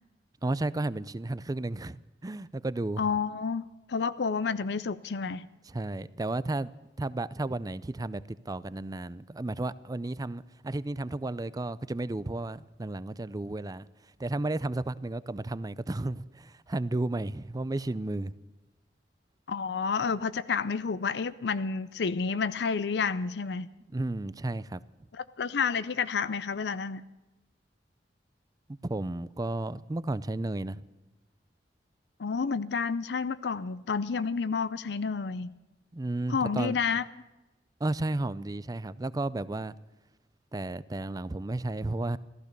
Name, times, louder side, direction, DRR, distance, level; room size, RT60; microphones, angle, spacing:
voice 1, 0.4-3.0 5.7-6.7 7.0-18.3 23.8-24.8 28.8-30.8 35.9-36.8 37.8-39.7 40.5-42.2, right 2 dB, 20° right, 0.5 m, -33 dB
voice 2, 3.0-5.5 19.5-23.7 25.1-27.0 32.2-35.5 36.3-37.0, left 5 dB, 70° left, 0.5 m, -30 dB
15.0 x 14.0 x 6.7 m
head